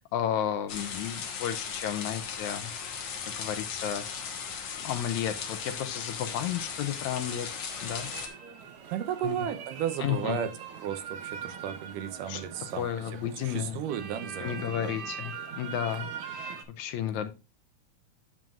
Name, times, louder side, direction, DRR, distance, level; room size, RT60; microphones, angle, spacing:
voice 1, 0.0-2.7 3.4-4.0 4.8-7.5 7.8-8.1 9.2-9.5 10.0-10.5 12.3-12.4 12.7-13.8 14.4-17.3, left 10 dB, 75° left, 9 dB, 1.9 m, -33 dB
sound 1, 0.7-8.3, left 6 dB, 60° left, 2.2 m, -37 dB
sound 2, 7.0-16.6, right 7 dB, 65° right, 1.3 m, -42 dB
voice 2, 8.9-13.1 13.4-14.9, right 10 dB, 90° right, 10 dB, 2.5 m, -34 dB
9.1 x 7.4 x 2.4 m, 0.30 s
omnidirectional pair, 3.6 m